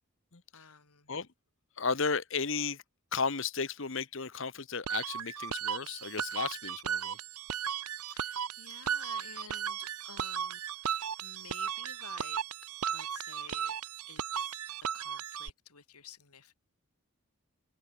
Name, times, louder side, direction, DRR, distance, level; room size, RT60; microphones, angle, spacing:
voice 1, 0.5-1.1 8.1-12.4 12.9-13.8 14.1-16.5, left 6 dB, 90° left, 5.9 m, -53 dB
voice 2, 1.8-2.8 3.1-7.2, left 5 dB, 60° left, 1.2 m, -34 dB
sound 1, 4.9-15.5, right 8 dB, 85° right, 1.1 m, -36 dB
head